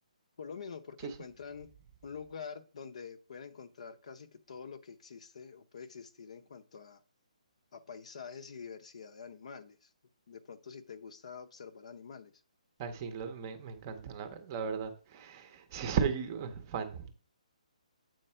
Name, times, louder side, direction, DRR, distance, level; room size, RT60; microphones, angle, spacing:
voice 1, 0.4-1.7 2.0-7.0 7.7-9.9 10.3-12.3, left 6 dB, 55° left, 0.8 m, -46 dB
voice 2, 12.8-17.1, right 6 dB, 20° right, 0.7 m, -36 dB
7.9 x 4.6 x 4.3 m
hypercardioid pair, 170°, 4 cm